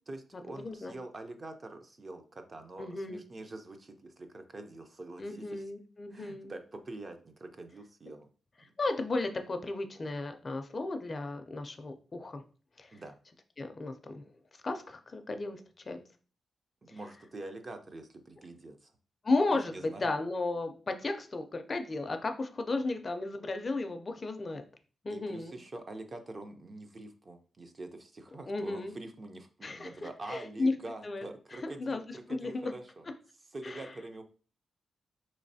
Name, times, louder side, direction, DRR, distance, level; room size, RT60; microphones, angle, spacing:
voice 1, 0.1-5.6 6.1-8.3 12.9-13.2 16.8-18.9 19.5-20.1 25.1-33.0 33.5-34.2, right 2 dB, 35° right, 6 dB, 0.5 m, -45 dB
voice 2, 0.6-0.9 2.8-3.2 5.2-6.5 8.8-12.4 12.8-13.0 13.6-14.3 14.6-16.0 16.9-17.0 19.2-24.6 25.0-25.6 28.5-28.9 29.6-30.7 31.0-31.3 31.5-32.7 33.6-33.9, left 2 dB, 30° left, 7 dB, 0.4 m, -34 dB
4.1 x 3.1 x 2.6 m, 0.39 s
wide cardioid pair, 130°, 0 cm